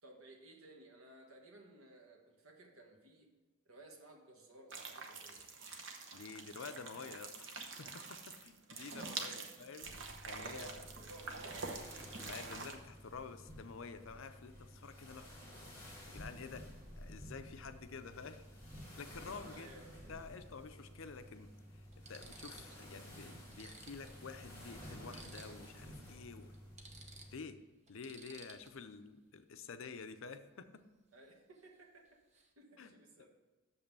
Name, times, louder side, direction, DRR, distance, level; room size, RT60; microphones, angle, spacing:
voice 1, 0.0-3.3 3.6-5.4 9.3-9.7 10.3-12.1 19.5-20.2 31.1-33.3, right 2 dB, 75° right, 2 dB, 1.5 m, -58 dB
sound 1, 4.7-12.7, right 4 dB, 60° right, 0.9 m, -46 dB
voice 2, 6.1-9.9 10.3-10.8 12.2-15.3 15.6-15.7 16.1-16.7 17.0-18.4 19.0-19.7 20.1-21.8 22.1-26.5 27.3-27.6 27.9-30.8 32.8-32.9 33.2-33.3, left 5 dB, 70° left, 10 dB, 0.6 m, -50 dB
sound 2, 9.8-27.4, equal, 10° left, 2.6 m, -53 dB
sound 3, 21.4-21.5 21.9-22.9 23.2-23.3 23.5-25.8 26.1-26.2 26.5-28.9 31.5-31.8 32.0-32.5, right 3 dB, 30° right, 0.8 m, -57 dB
6.8 x 5.6 x 6.9 m, 1.1 s
head